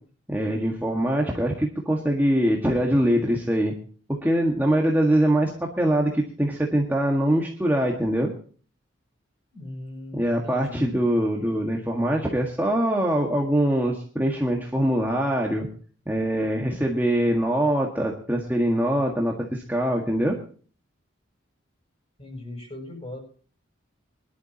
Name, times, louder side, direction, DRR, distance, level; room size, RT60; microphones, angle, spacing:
voice 1, 0.3-3.7 4.2-8.3 10.1-15.7 16.1-20.4, right 1 dB, 10° right, -1 dB, 1.6 m, -23 dB
voice 2, 9.5-10.9 22.2-23.2, left 1 dB, 30° left, 2 dB, 7.3 m, -38 dB
22.5 x 12.0 x 2.9 m, 0.42 s
head